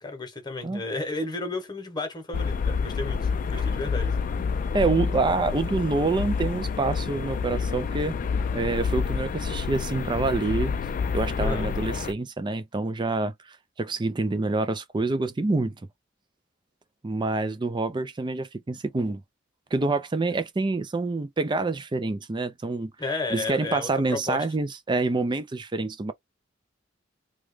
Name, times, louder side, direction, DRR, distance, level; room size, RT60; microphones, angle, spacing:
voice 1, 0.0-4.2 11.4-11.7 23.0-24.5, left 2 dB, 20° left, 1.1 m, -33 dB
sound 1, 2.3-12.1, left 5 dB, 40° left, 0.3 m, -28 dB
voice 2, 4.7-8.2 8.5-10.7 11.1-13.3 13.8-15.7 17.0-19.2 19.7-22.9 23.3-26.1, right 3 dB, 25° right, 0.4 m, -27 dB
3.0 x 2.4 x 3.3 m
head